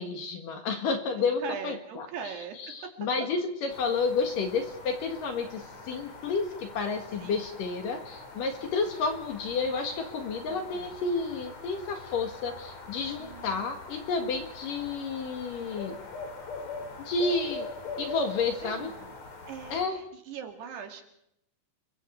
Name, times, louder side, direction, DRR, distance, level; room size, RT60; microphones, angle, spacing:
voice 1, 0.0-16.0 17.0-17.7 18.0-18.9 19.7-20.0, left 4 dB, 60° left, 6 dB, 2.9 m, -31 dB
voice 2, 1.2-2.7 7.2-7.4 10.5-11.0 13.2-13.7 18.6-19.1 19.5-21.0, right 7 dB, 70° right, 5 dB, 4.2 m, -41 dB
sound 1, 3.7-19.9, left 3 dB, 40° left, 4.0 m, -43 dB
29.5 x 22.5 x 4.6 m, 0.79 s
omnidirectional pair, 5.0 m